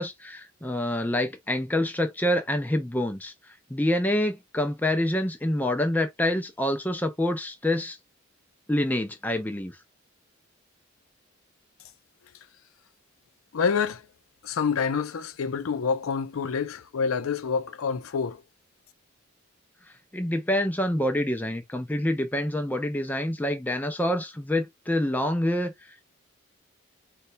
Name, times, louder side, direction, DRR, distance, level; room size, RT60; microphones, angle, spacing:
voice 1, 0.0-3.3 3.7-8.0 8.7-9.7 20.1-25.7, left 1 dB, 10° left, 0.4 m, -26 dB
voice 2, 13.5-14.0 14.4-18.4, left 6 dB, 90° left, 0.5 m, -27 dB
4.1 x 2.3 x 2.5 m
head